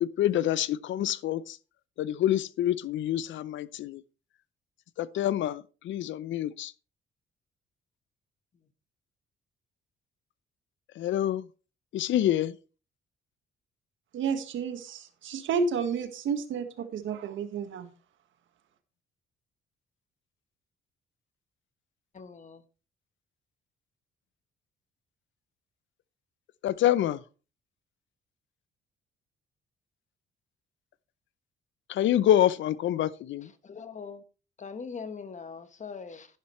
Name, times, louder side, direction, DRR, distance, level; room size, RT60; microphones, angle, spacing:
voice 1, 0.0-1.6 2.0-4.0 5.0-6.7 11.0-11.4 11.9-12.5 26.6-27.2 31.9-33.5, left 12 dB, 75° left, 0.6 m, -26 dB
voice 2, 14.1-17.9, right 5 dB, 75° right, 1.6 m, -31 dB
voice 3, 22.1-22.6 33.7-34.2 34.6-36.3, left 5 dB, 40° left, 1.2 m, -41 dB
11.5 x 10.0 x 3.1 m
cardioid pair, 90°, 20 cm